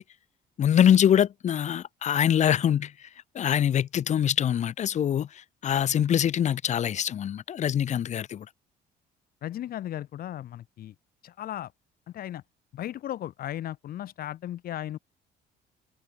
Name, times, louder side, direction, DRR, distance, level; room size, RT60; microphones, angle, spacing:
voice 1, 0.6-3.1 3.3-8.5, left 9 dB, 45° left, 0.8 m, -24 dB
voice 2, 9.4-10.9 11.2-11.7 12.1-12.4 12.7-15.0, left 12 dB, 60° left, 2.3 m, -36 dB
cardioid pair, 110°, 17 cm